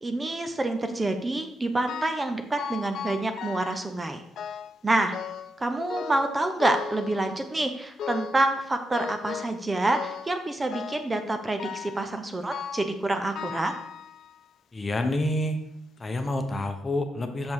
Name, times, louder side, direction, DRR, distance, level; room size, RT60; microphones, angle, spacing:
voice 1, 0.0-4.2 4.8-5.2 5.6-13.7, right 2 dB, 20° right, 7 dB, 0.8 m, -27 dB
sound 1, 1.9-2.3 2.6-3.9 4.4-4.8 5.1-5.6 5.9-7.6 8.0-8.5 8.9-9.6 9.9-10.4 10.7-11.1 11.6-12.0 12.5-13.0 13.4-14.4 15.1-15.2 16.0-16.1 16.5-16.6, left 7 dB, 65° left, 0.5 m, -37 dB
voice 2, 14.7-15.6 16.0-17.5, left 1 dB, 30° left, 6 dB, 1.0 m, -28 dB
6.5 x 5.3 x 4.7 m, 0.77 s
supercardioid pair, 70°, 0 cm